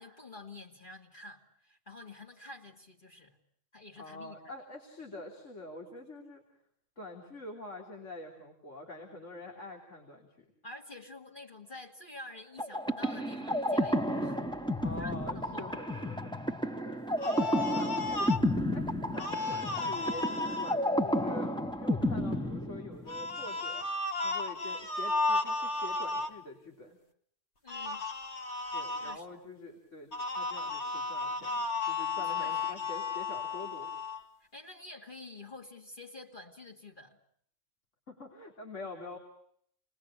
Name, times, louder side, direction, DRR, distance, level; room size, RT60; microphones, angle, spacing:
voice 1, 0.0-3.4 3.7-4.4 10.6-14.6 14.9-15.8 27.6-28.1 29.0-29.3 32.2-32.9 34.5-37.2, left 2 dB, 45° left, 0 dB, 2.5 m, -48 dB
voice 2, 4.0-6.4 7.0-10.5 14.8-16.4 16.9-17.0 17.3-18.4 18.7-21.5 21.8-23.9 24.2-27.0 28.7-33.9 38.1-39.2, left 2 dB, 85° left, 1 dB, 3.5 m, -45 dB
sound 1, 12.6-23.3, equal, 5° left, 0.9 m, -32 dB
sound 2, 17.2-18.4 19.1-20.7 23.1-26.3 27.7-29.2 30.1-34.2, left 3 dB, 65° left, 2.0 m, -34 dB
29.0 x 20.5 x 8.7 m, 0.68 s
omnidirectional pair, 1.2 m